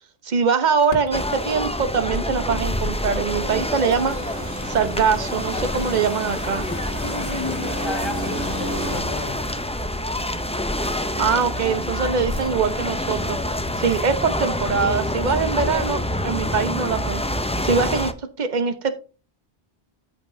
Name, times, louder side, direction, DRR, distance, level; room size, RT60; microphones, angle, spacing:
voice 1, 0.2-4.1 4.6-6.6 11.2-13.4 13.8-17.2 17.6-18.1 18.4-18.9, right 5 dB, 45° right, 1.1 m, -23 dB
sound 1, 0.8-7.5, left 1 dB, 65° left, 2.0 m, -44 dB
sound 2, 1.1-18.1, left 1 dB, 10° left, 0.4 m, -27 dB
sound 3, 3.4-9.0, equal, 15° right, 2.6 m, -33 dB
voice 2, 7.0-9.7, left 2 dB, 25° left, 0.9 m, -33 dB
14.0 x 5.3 x 2.7 m
omnidirectional pair, 1.1 m